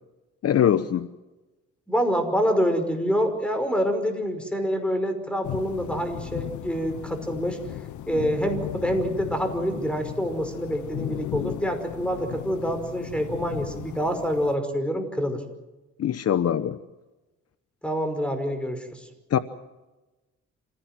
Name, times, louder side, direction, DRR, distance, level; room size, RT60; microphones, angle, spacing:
voice 1, 0.4-1.1 16.0-16.8 19.3-19.4, left 9 dB, 55° left, 12 dB, 0.9 m, -22 dB
voice 2, 1.9-7.6 8.1-15.4 17.8-19.0, equal, 5° left, 7 dB, 5.4 m, -26 dB
sound 1, 5.4-14.6, left 11 dB, 75° left, 1.0 m, -36 dB
27.0 x 17.0 x 7.6 m, 1.1 s
cardioid pair, 90°, 30 cm